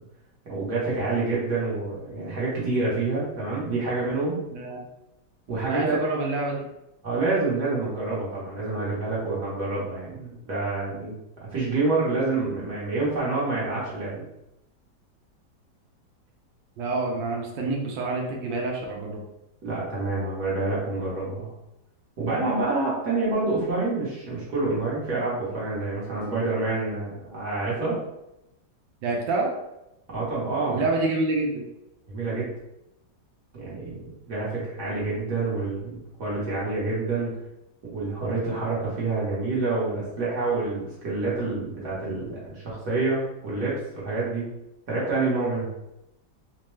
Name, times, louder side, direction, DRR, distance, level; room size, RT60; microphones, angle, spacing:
voice 1, 0.5-4.4 5.5-6.0 7.0-11.1 11.4-14.2 19.6-21.5 22.2-28.0 30.1-30.8 32.1-32.5 33.5-37.3 37.9-44.5 44.9-45.7, right 3 dB, 60° right, -7 dB, 1.7 m, -27 dB
voice 2, 4.5-4.8 5.6-6.7 16.8-19.2 29.0-29.5 30.7-31.6, right 3 dB, 90° right, 0 dB, 1.4 m, -27 dB
4.4 x 2.2 x 3.1 m, 0.87 s
omnidirectional pair, 2.0 m